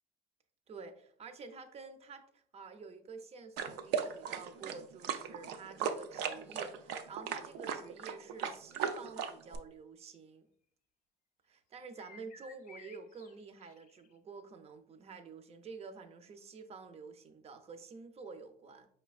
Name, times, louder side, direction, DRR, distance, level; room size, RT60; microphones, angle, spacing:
voice 1, 0.7-10.5 11.5-18.9, right 4 dB, 40° right, 9 dB, 0.5 m, -49 dB
sound 1, 3.6-9.6, right 7 dB, 90° right, 0.4 m, -37 dB
sound 2, 11.8-14.2, left 4 dB, 50° left, 0.5 m, -56 dB
4.8 x 3.3 x 2.3 m, 0.63 s
cardioid pair, 110°, 17 cm